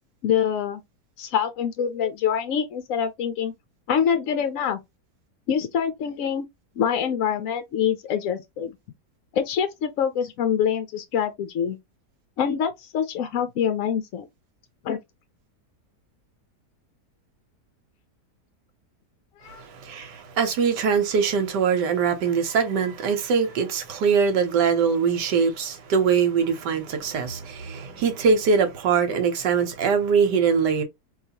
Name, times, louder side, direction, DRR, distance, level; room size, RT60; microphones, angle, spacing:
voice 1, 0.2-0.8 1.2-3.5 3.9-4.8 5.5-6.5 6.8-8.8 9.3-11.8 12.4-14.3 14.8-15.0 19.4-19.6, left 8 dB, 65° left, 0.8 m, -25 dB
voice 2, 19.5-30.8, right 6 dB, 80° right, 1.4 m, -22 dB
4.7 x 2.7 x 2.8 m
omnidirectional pair, 1.8 m